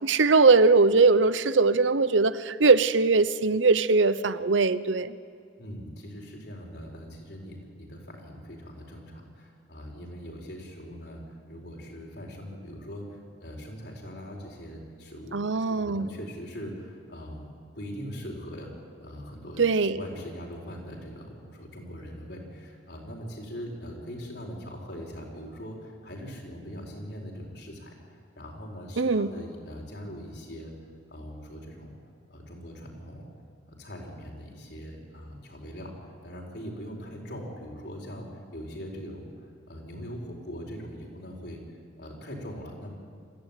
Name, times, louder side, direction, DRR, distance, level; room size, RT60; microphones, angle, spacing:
voice 1, 0.0-5.1 15.3-16.1 19.6-20.0 29.0-29.3, right 4 dB, 90° right, 0.8 m, -21 dB
voice 2, 5.6-17.5 17.7-18.7 19.0-19.6 19.9-27.9 28.4-30.7 31.1-32.0 32.3-33.3 33.7-39.3 39.7-42.9, equal, 65° left, 4.7 m, -41 dB
25.0 x 15.0 x 9.2 m
head